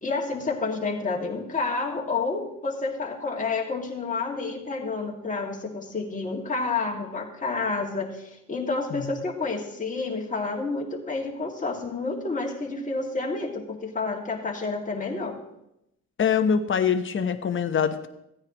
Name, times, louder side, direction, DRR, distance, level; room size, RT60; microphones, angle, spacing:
voice 1, 0.0-15.4, left 3 dB, 25° left, 0 dB, 2.2 m, -29 dB
voice 2, 16.2-18.1, left 7 dB, 40° left, 8 dB, 0.9 m, -24 dB
15.5 x 9.5 x 3.0 m, 0.84 s
cardioid pair, 90°, 30 cm